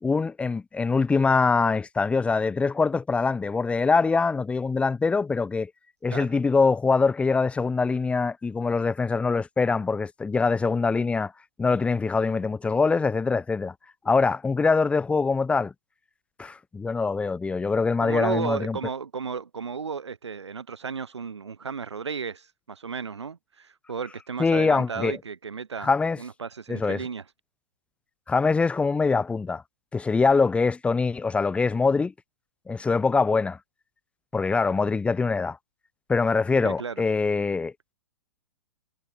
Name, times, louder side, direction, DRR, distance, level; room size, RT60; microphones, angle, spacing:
voice 1, 0.0-5.7 6.0-11.3 11.6-13.7 14.0-15.7 16.4-18.8 24.4-25.2 25.8-26.2 26.7-27.0 28.3-29.6 29.9-32.1 32.7-33.6 34.3-35.6 36.1-37.9, left 4 dB, 10° left, 0.8 m, -23 dB
voice 2, 18.0-25.9 26.2-27.2 36.5-37.0, right 5 dB, 70° right, 5.0 m, -34 dB
figure-of-eight pair, 110°, 15 cm